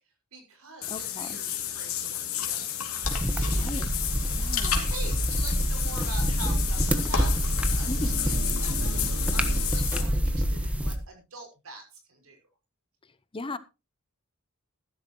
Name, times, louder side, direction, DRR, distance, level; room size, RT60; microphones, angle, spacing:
voice 1, 0.3-3.8 4.3-12.4, right 3 dB, 90° right, 6.0 m, -45 dB
Water / Bathtub (filling or washing), 0.8-10.0, left 10 dB, 80° left, 3.0 m, -32 dB
voice 2, 0.9-1.4 3.4-3.9 4.4-4.9 7.9-8.1 13.3-13.6, left 2 dB, 25° left, 0.7 m, -37 dB
sound 1, 3.0-11.0, equal, 5° right, 1.4 m, -27 dB
sound 2, 3.5-9.7, right 1 dB, 70° right, 2.6 m, -45 dB
14.5 x 12.0 x 3.1 m
head